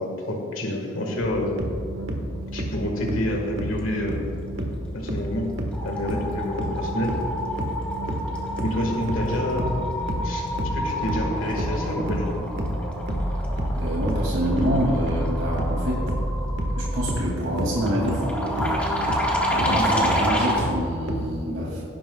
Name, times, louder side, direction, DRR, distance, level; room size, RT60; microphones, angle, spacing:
voice 1, 0.0-1.5 2.5-4.3 4.9-5.5 5.8-7.2 8.6-9.8 10.2-10.5 10.7-12.5, left 1 dB, 75° left, 1 dB, 1.6 m, -28 dB
sound 1, 1.2-21.2, right 1 dB, 60° right, 1.4 m, -29 dB
sound 2, 4.9-5.2 5.5-20.7, equal, 5° left, 1.6 m, -29 dB
voice 2, 13.7-16.0 16.8-18.9 19.5-21.9, equal, 80° right, -5 dB, 2.5 m, -26 dB
17.5 x 10.0 x 2.3 m, 2.4 s
head